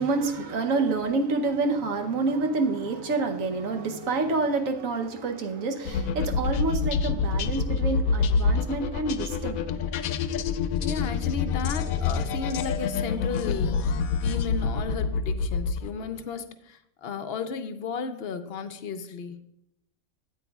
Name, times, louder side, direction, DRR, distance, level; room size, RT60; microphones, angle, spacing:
voice 1, 0.0-9.6, right 3 dB, 80° right, 1.3 m, -28 dB
sound 1, 5.9-16.0, left 5 dB, 90° left, 1.0 m, -27 dB
voice 2, 10.8-19.4, left 5 dB, 60° left, 0.7 m, -34 dB
13.5 x 8.5 x 2.3 m
omnidirectional pair, 1.4 m